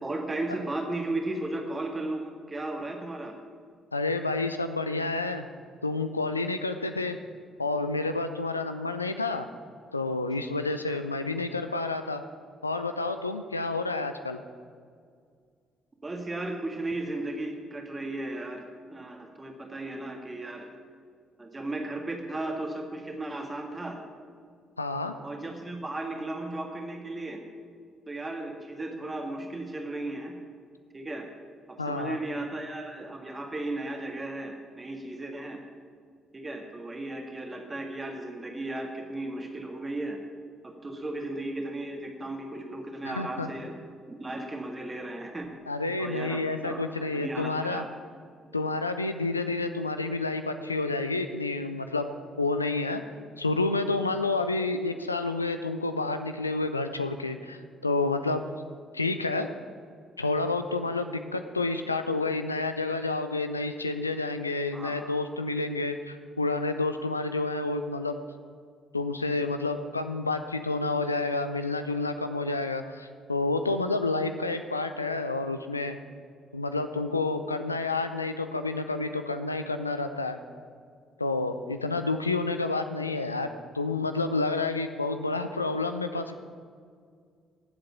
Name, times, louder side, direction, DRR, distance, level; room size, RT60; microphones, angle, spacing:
voice 1, 0.0-3.4 10.9-11.1 16.0-18.7 18.9-20.7 21.4-24.0 25.2-27.4 28.1-30.3 30.9-31.3 31.7-35.6 36.3-40.2 40.6-43.7 44.1-45.5 46.0-47.9 64.7-65.1, right 2 dB, 25° right, 2 dB, 1.7 m, -35 dB
voice 2, 3.9-5.5 5.8-7.2 7.6-9.5 9.9-12.2 12.6-14.4 24.8-25.1 31.8-32.2 43.1-43.5 45.7-47.8 48.5-53.0 53.4-58.6 58.9-59.5 60.2-68.2 68.9-76.0 76.5-80.4 81.2-83.5 83.7-86.4, left 3 dB, 85° left, 8 dB, 0.4 m, -29 dB
19.5 x 7.8 x 5.9 m, 2.1 s
figure-of-eight pair, 45°, 0 cm